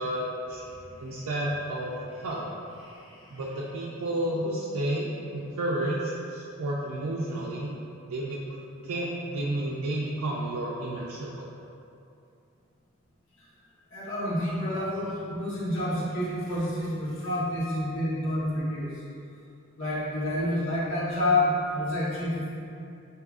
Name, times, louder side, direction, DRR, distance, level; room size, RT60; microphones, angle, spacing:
voice 1, 0.0-0.6 1.0-2.4 3.3-7.7 8.1-8.4 8.8-11.4, right 1 dB, 85° right, -6 dB, 0.4 m, -31 dB
voice 2, 0.7-1.3 2.8-3.4 13.9-19.0 19.8-22.5, left 1 dB, 65° left, -8 dB, 1.0 m, -29 dB
4.7 x 2.8 x 2.4 m, 2.6 s
head